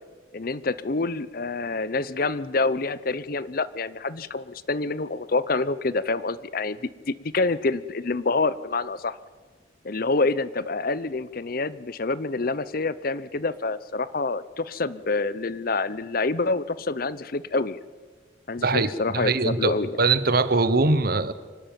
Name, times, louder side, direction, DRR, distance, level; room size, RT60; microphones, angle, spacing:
voice 1, 0.3-6.8 7.1-9.2 9.8-17.8 18.5-20.0, left 3 dB, 50° left, 17 dB, 0.7 m, -27 dB
voice 2, 19.1-21.3, right 3 dB, 50° right, 14 dB, 1.0 m, -22 dB
25.5 x 12.5 x 9.1 m, 1.4 s
head